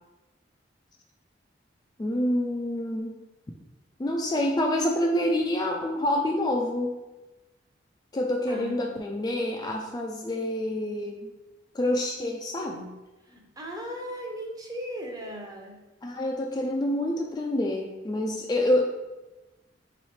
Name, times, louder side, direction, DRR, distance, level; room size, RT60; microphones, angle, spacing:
voice 1, 2.0-3.1 4.0-7.0 8.1-11.3 11.7-12.9 16.0-18.8, left 1 dB, 20° left, 1 dB, 0.3 m, -27 dB
voice 2, 8.5-9.1 13.2-15.8, equal, 20° right, 0 dB, 0.8 m, -38 dB
4.0 x 3.1 x 4.2 m, 1.1 s
head